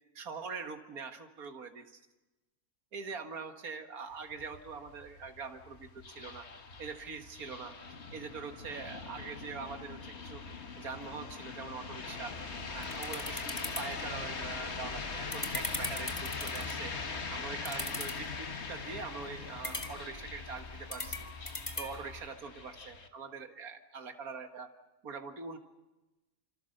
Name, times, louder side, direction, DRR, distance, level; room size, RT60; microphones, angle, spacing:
voice 1, 0.2-2.0 2.9-6.5 6.8-7.8 8.1-10.4 10.8-12.3 12.7-16.9 17.3-21.3 21.8-24.7 25.0-25.6, right 5 dB, 70° right, 7 dB, 2.2 m, -43 dB
sound 1, 4.1-23.1, left 4 dB, 45° left, 1.7 m, -42 dB
sound 2, 12.2-22.3, left 2 dB, 20° left, 1.8 m, -42 dB
27.0 x 26.5 x 6.6 m, 1.1 s
omnidirectional pair, 1.6 m